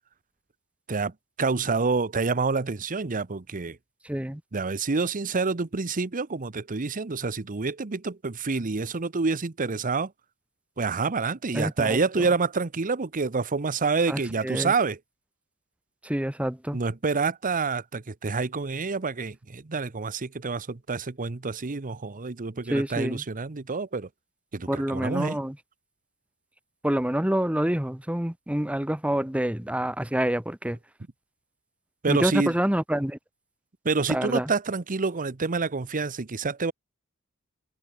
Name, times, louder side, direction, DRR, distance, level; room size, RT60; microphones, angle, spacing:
voice 1, 1.4-3.8 4.5-10.1 10.8-15.0 16.7-24.1 24.5-25.4 32.0-32.5 33.8-36.7, right 4 dB, 40° right, 0.8 m, -27 dB
voice 2, 4.0-4.4 11.5-12.3 14.1-14.7 16.0-16.8 22.7-23.2 24.7-25.6 26.8-30.8 32.1-33.2 34.1-34.5, right 1 dB, 5° right, 1.0 m, -27 dB
head